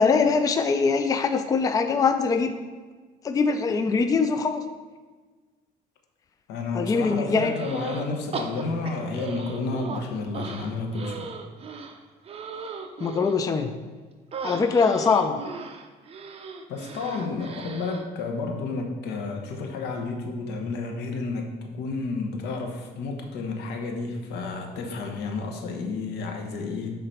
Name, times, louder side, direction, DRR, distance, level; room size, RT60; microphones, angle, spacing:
voice 1, 0.0-2.5 3.2-4.6 6.7-7.5 13.0-13.7 14.4-15.4, left 5 dB, 20° left, 8 dB, 0.4 m, -22 dB
voice 2, 6.5-11.3 16.7-26.9, left 3 dB, 85° left, 3 dB, 1.0 m, -31 dB
sound 1, 7.5-8.1 8.3-10.0 10.3-13.4 14.3-18.0, right 5 dB, 35° right, 0.6 m, -37 dB
6.7 x 3.8 x 4.3 m, 1.4 s
cardioid pair, 110°, 17 cm